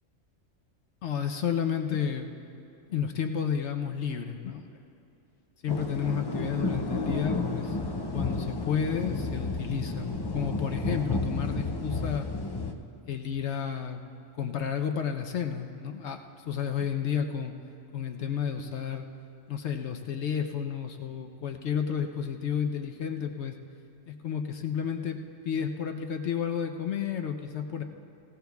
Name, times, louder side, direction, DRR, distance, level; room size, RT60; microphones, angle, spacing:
voice 1, 1.0-2.3 2.9-4.7 5.6-7.8 8.1-12.3 13.0-14.0 14.4-17.5 17.9-19.1 19.5-23.6 24.1-25.2 25.4-27.8, left 7 dB, 65° left, 5 dB, 0.9 m, -31 dB
sound 1, 5.7-12.7, left 3 dB, 35° left, 0.4 m, -31 dB
19.5 x 16.5 x 2.3 m, 2.8 s
omnidirectional pair, 1.3 m